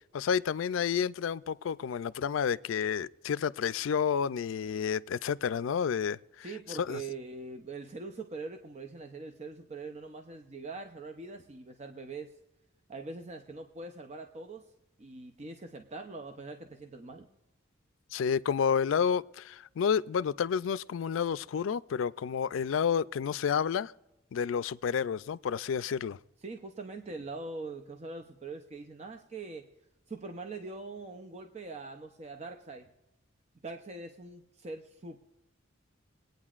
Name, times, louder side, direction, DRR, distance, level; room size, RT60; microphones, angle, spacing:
voice 1, 0.1-6.2 6.8-7.0 18.1-23.9 24.3-26.2, left 7 dB, 80° left, 0.4 m, -30 dB
voice 2, 6.4-12.3 12.9-14.6 15.0-17.3 26.4-29.7 30.1-32.9 33.6-35.2, right 3 dB, 35° right, 0.6 m, -42 dB
23.0 x 9.2 x 2.4 m
head